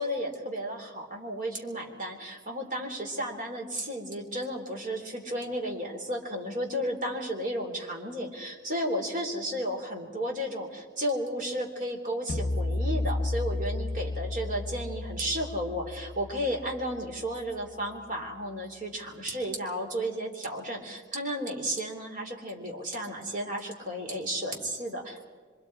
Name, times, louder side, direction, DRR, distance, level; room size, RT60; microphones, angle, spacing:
voice 1, 0.0-25.3, equal, 45° right, 1 dB, 3.5 m, -33 dB
sound 1, 12.3-17.6, left 2 dB, 45° left, 0.9 m, -33 dB
26.0 x 25.0 x 4.8 m, 1.5 s
head